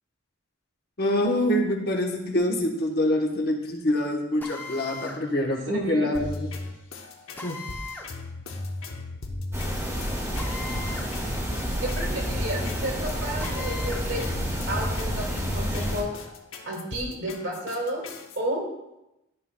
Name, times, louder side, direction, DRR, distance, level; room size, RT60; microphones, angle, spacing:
voice 1, 1.0-6.3 7.4-7.6, left 1 dB, 50° left, 1 dB, 1.0 m, -25 dB
Drill, 4.4-5.2 7.4-8.1 10.3-11.1 11.5-11.6 13.4-14.1, left 3 dB, 10° left, 0.6 m, -39 dB
voice 2, 5.7-6.1 11.8-14.2 14.7-16.1 16.6-18.1 18.4-18.6, right 1 dB, 60° right, -1 dB, 1.9 m, -31 dB
sound 1, 6.1-18.4, left 2 dB, 80° left, 0.8 m, -36 dB
sound 2, 9.5-16.0, equal, 15° right, 1.1 m, -30 dB
12.0 x 5.7 x 2.2 m, 0.92 s
head